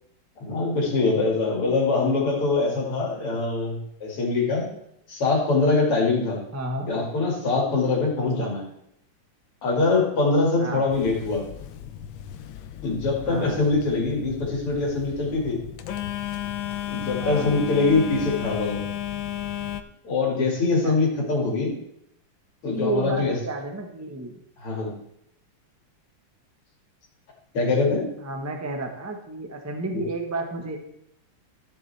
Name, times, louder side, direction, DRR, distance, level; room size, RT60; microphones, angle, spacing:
voice 1, 0.4-4.7 5.1-6.4 6.9-8.7 9.6-11.5 12.8-15.6 16.9-18.8 20.0-21.8 22.6-23.4 24.6-24.9 27.5-28.1 29.9-30.0, left 3 dB, 85° left, -1 dB, 3.2 m, -23 dB
voice 2, 6.5-6.9 8.2-8.5 10.6-10.8 13.2-13.6 17.2-17.6 20.8-20.9 22.7-24.4 28.2-30.8, right 2 dB, 15° right, 3 dB, 0.5 m, -31 dB
Telephone, 10.9-19.8, left 11 dB, 70° left, 1.3 m, -34 dB
14.5 x 7.2 x 3.4 m, 0.76 s
omnidirectional pair, 2.4 m